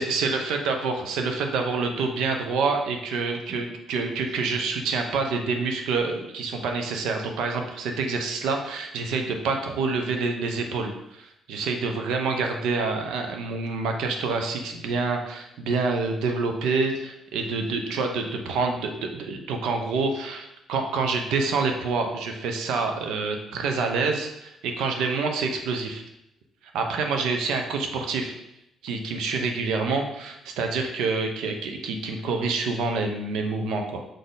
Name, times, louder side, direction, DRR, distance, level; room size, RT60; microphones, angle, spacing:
voice 1, 0.0-26.0 26.7-28.4 28.8-34.0, right 4 dB, 85° right, 4 dB, 0.8 m, -27 dB
6.6 x 4.2 x 3.9 m, 0.82 s
cardioid pair, 90°, 0 cm